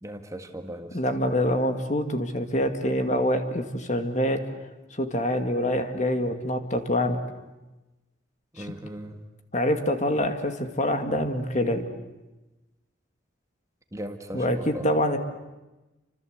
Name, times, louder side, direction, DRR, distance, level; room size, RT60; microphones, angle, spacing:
voice 1, 0.0-0.9 8.6-9.2 13.9-14.8, equal, 15° right, 6 dB, 1.7 m, -38 dB
voice 2, 0.9-4.4 4.9-7.2 8.6-8.7 9.5-11.8 14.3-15.2, left 1 dB, 40° left, 7 dB, 2.2 m, -25 dB
28.5 x 26.0 x 8.1 m, 1.1 s
head